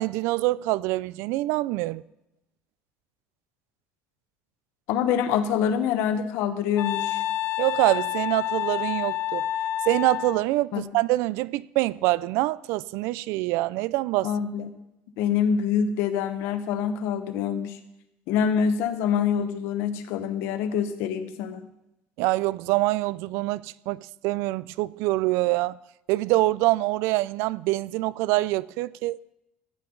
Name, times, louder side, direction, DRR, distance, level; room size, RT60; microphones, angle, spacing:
voice 1, 0.0-2.0 7.6-9.4 9.9-14.3 22.2-25.8 26.1-29.2, right 19 dB, 85° right, 0.4 m, -25 dB
voice 2, 4.9-7.2 10.7-10.8 14.2-14.7 15.2-17.8 18.3-21.7, left 7 dB, 80° left, 1.2 m, -25 dB
Wind instrument woodwind instrument, 6.8-10.4, left 12 dB, 65° left, 0.5 m, -28 dB
15.0 x 10.5 x 3.9 m
cardioid pair, 125°, 4 cm